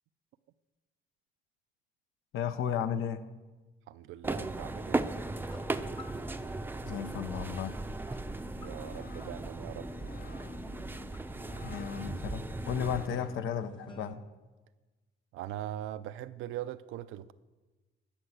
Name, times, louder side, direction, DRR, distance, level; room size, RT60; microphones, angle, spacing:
voice 1, 2.3-3.2 6.8-7.8 11.6-14.2, left 8 dB, 80° left, 0.7 m, -34 dB
voice 2, 3.9-5.0 8.6-9.9 15.3-17.3, right 12 dB, 90° right, 0.5 m, -41 dB
sound 1, 4.2-13.1, right 2 dB, 10° right, 0.5 m, -37 dB
sound 2, 5.1-14.1, left 1 dB, 25° left, 1.2 m, -51 dB
sound 3, 8.4-13.7, left 5 dB, 50° left, 0.8 m, -50 dB
12.0 x 5.9 x 8.0 m
cardioid pair, 90°, 20 cm